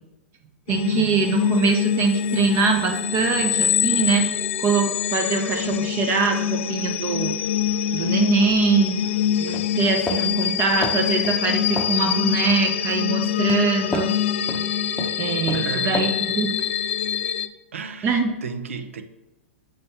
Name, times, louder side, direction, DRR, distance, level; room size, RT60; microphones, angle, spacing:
sound 1, 0.7-17.5, left 9 dB, 65° left, 0.4 m, -24 dB
voice 1, 0.7-7.3 7.9-9.0 9.4-14.2 15.2-16.6 18.0-18.3, right 5 dB, 35° right, 0.7 m, -23 dB
sound 2, 9.5-10.3 10.8-11.4 11.8-12.0 12.7-13.0 13.5-13.6 13.9-14.1 14.5-14.7 15.0-15.2 15.5-15.7 15.9-16.1, left 2 dB, 10° left, 0.7 m, -29 dB
voice 2, 15.5-16.1 17.7-19.0, right 5 dB, 80° right, 0.6 m, -33 dB
7.0 x 5.2 x 2.8 m
hypercardioid pair, 115°, 7 cm